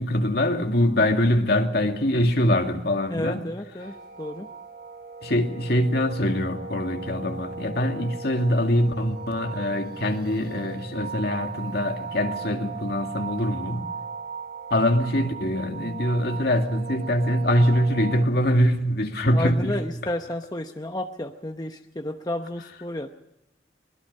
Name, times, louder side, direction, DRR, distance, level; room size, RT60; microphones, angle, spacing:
voice 1, 0.0-3.4 5.2-13.9 14.7-19.8, left 1 dB, 60° left, 4 dB, 2.3 m, -23 dB
voice 2, 3.1-4.5 19.3-23.1, left 1 dB, 20° left, 5 dB, 0.9 m, -31 dB
sound 1, 3.8-18.3, right 5 dB, 55° right, 1.3 m, -37 dB
23.5 x 21.0 x 5.5 m, 0.91 s
head